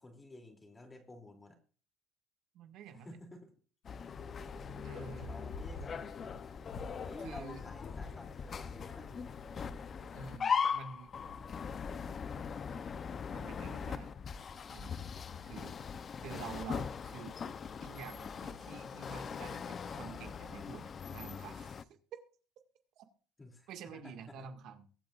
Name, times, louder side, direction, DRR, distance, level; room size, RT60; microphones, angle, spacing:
voice 1, 0.0-1.6 2.9-3.5 5.2-6.4 7.0-9.3 23.4-24.5, left 2 dB, 15° left, 4 dB, 2.8 m, -52 dB
voice 2, 2.5-3.2 4.8-5.3 7.2-7.6 10.1-11.1 13.3-14.1 14.7-15.0 15.5-16.0 16.2-17.4 17.8-21.9 23.0-23.1 23.7-24.9, right 6 dB, 60° right, 6 dB, 1.9 m, -48 dB
sound 1, 3.8-13.9, left 3 dB, 70° left, 3.8 m, -53 dB
sound 2, 3.9-21.8, left 6 dB, 30° left, 0.7 m, -40 dB
22.5 x 8.9 x 2.5 m, 0.38 s
cardioid pair, 150°, 0 cm